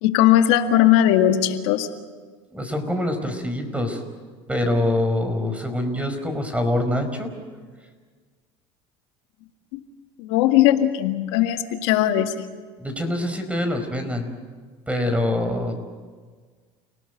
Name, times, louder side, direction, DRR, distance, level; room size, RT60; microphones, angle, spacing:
voice 1, 0.0-1.9 9.7-9.8 10.2-12.5, left 12 dB, 80° left, 6 dB, 2.0 m, -19 dB
voice 2, 2.5-4.0 4.5-7.3 12.8-14.3 14.9-15.7, left 1 dB, 10° right, 6 dB, 4.9 m, -25 dB
29.5 x 18.5 x 8.1 m, 1.5 s
supercardioid pair, 100°, 14 cm